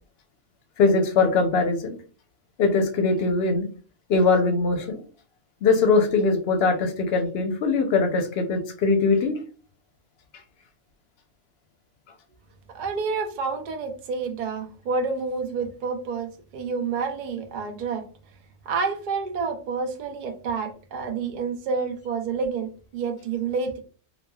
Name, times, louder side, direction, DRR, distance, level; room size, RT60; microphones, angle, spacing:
voice 1, 0.8-2.0 2.6-3.7 4.1-5.0 5.6-9.4, left 4 dB, 60° left, 5 dB, 0.8 m, -21 dB
voice 2, 12.7-18.0 18.7-23.8, right 5 dB, 55° right, 5 dB, 0.5 m, -29 dB
3.0 x 2.3 x 2.2 m, 0.39 s
omnidirectional pair, 1.3 m